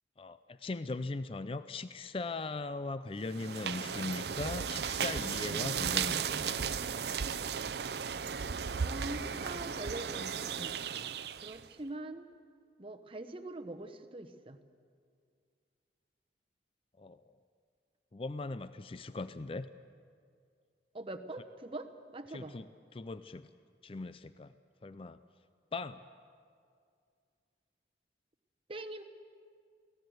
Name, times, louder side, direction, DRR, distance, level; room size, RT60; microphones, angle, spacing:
voice 1, 0.2-7.1 17.0-17.2 18.1-19.7 22.3-23.5 23.8-24.5 24.8-25.2 25.7-26.0, left 3 dB, 30° left, 13 dB, 0.4 m, -39 dB
sound 1, 3.2-11.7, right 7 dB, 60° right, 0.6 m, -35 dB
voice 2, 8.8-12.3 12.8-14.6 20.9-22.6 28.7-29.0, right 2 dB, 30° right, 7 dB, 1.0 m, -43 dB
23.5 x 17.0 x 7.9 m, 2.2 s
head